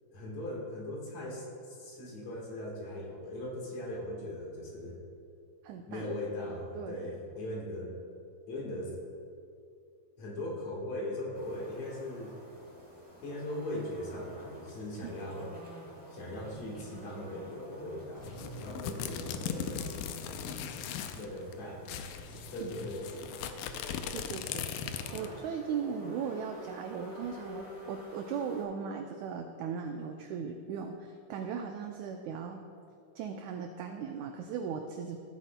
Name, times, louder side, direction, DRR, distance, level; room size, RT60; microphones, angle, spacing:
voice 1, 0.1-5.0 5.8-7.9 8.5-8.9 10.2-12.3 13.2-15.5 16.1-19.8 21.1-23.6, left 1 dB, 60° left, -3 dB, 2.6 m, -39 dB
voice 2, 5.6-6.1 6.7-7.1 15.0-15.1 22.6-22.7 24.1-32.6 33.1-35.2, right 6 dB, 85° right, 4 dB, 1.6 m, -38 dB
sound 1, 11.3-28.6, equal, 15° left, 1.0 m, -50 dB
sound 2, 18.1-23.8, right 2 dB, 35° right, 2.1 m, -52 dB
sound 3, 18.2-21.3 21.5-21.6 21.9-25.4, left 8 dB, 80° left, 1.8 m, -38 dB
16.0 x 8.8 x 2.2 m, 2.4 s
omnidirectional pair, 3.9 m